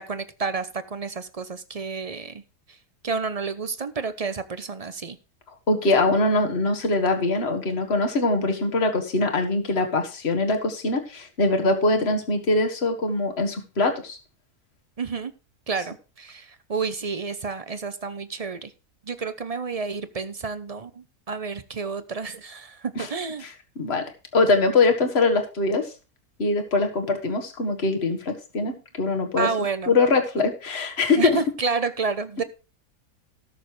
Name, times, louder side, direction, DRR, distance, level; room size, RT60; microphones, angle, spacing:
voice 1, 0.0-2.4 2.7-2.8 3.0-5.2 15.0-15.3 15.7-18.7 19.0-23.4 28.7-28.8 29.4-29.9 31.2-32.4, right 4 dB, 35° right, 11 dB, 0.6 m, -30 dB
voice 2, 5.7-14.2 23.0-23.1 23.8-24.0 24.3-25.9 26.4-28.7 29.0-29.5 29.9-31.4, left 3 dB, 45° left, 5 dB, 1.9 m, -22 dB
18.5 x 6.6 x 3.2 m, 0.32 s
omnidirectional pair, 1.6 m